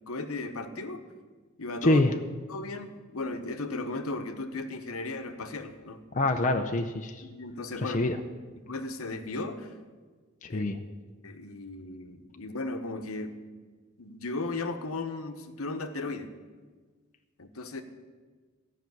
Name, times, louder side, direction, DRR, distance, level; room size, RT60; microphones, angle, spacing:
voice 1, 0.1-1.0 1.6-2.0 2.5-6.0 7.2-8.0 8.7-9.7 10.5-10.6 11.2-13.4 14.0-16.3 17.4-17.8, left 2 dB, 75° left, 8 dB, 1.0 m, -36 dB
voice 2, 6.1-7.2 7.8-8.2 10.4-10.8, left 2 dB, 35° left, 5 dB, 0.6 m, -25 dB
14.0 x 5.9 x 9.3 m, 1.4 s
head